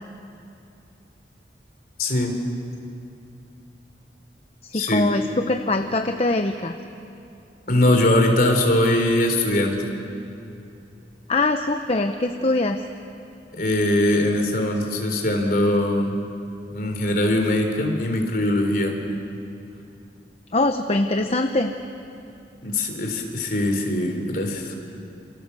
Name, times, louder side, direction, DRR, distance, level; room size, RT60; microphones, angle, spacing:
voice 1, 2.0-2.4 4.7-5.1 7.7-9.9 13.5-16.2 16.7-19.0 22.6-24.7, left 1 dB, 50° left, 3 dB, 3.7 m, -21 dB
voice 2, 4.6-6.7 11.3-12.8 20.5-21.7, left 2 dB, 35° left, 6 dB, 0.8 m, -23 dB
28.0 x 27.5 x 7.0 m, 2.7 s
head